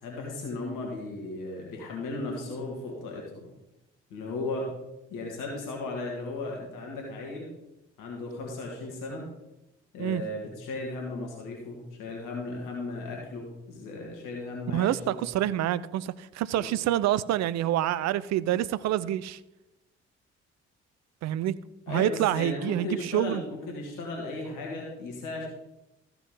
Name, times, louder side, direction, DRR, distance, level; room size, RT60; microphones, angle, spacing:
voice 1, 0.0-3.5 4.1-4.7 5.1-7.5 8.0-9.2 9.9-15.2 16.5-16.7 21.9-25.5, left 2 dB, 65° left, 0 dB, 2.0 m, -36 dB
voice 2, 14.7-19.4 21.2-21.6 21.9-23.4, right 12 dB, 50° right, 17 dB, 0.5 m, -27 dB
14.0 x 5.7 x 3.9 m, 0.93 s
figure-of-eight pair, 45°, 34 cm